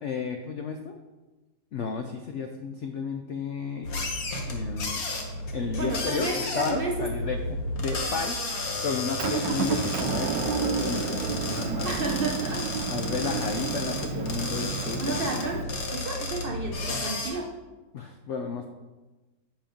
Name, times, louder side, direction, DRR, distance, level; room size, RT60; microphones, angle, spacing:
voice 1, 0.0-1.0 1.7-3.9 4.4-5.0 5.5-8.4 8.8-12.0 12.9-15.4 17.9-18.7, left 5 dB, 75° left, 5 dB, 0.6 m, -33 dB
sound 1, 3.8-17.3, left 2 dB, 55° left, 1.5 m, -32 dB
voice 2, 5.7-7.1 11.8-12.6 15.0-15.7 15.9-17.5, right 3 dB, 50° right, 0 dB, 0.6 m, -31 dB
Motor vehicle (road) / Engine, 9.2-15.6, right 6 dB, 80° right, 1.2 m, -31 dB
7.2 x 5.4 x 5.1 m, 1.2 s
omnidirectional pair, 1.9 m